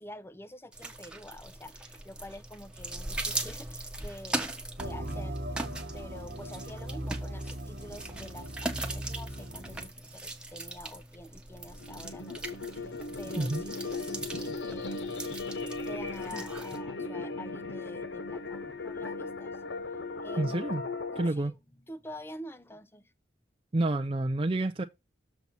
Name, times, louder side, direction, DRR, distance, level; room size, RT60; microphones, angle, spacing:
voice 1, 0.0-5.4 5.9-15.1 15.8-19.6 20.2-20.7 21.1-21.5 21.9-23.1, left 1 dB, 15° left, 0.6 m, -47 dB
sound 1, 0.7-16.8, right 2 dB, 5° right, 1.1 m, -40 dB
sound 2, 4.8-9.9, right 1 dB, 60° right, 1.2 m, -39 dB
sound 3, 11.7-21.3, left 3 dB, 80° left, 1.1 m, -37 dB
voice 2, 20.4-20.8 21.2-21.5 23.7-24.8, right 2 dB, 30° right, 0.5 m, -28 dB
6.9 x 4.2 x 6.0 m
head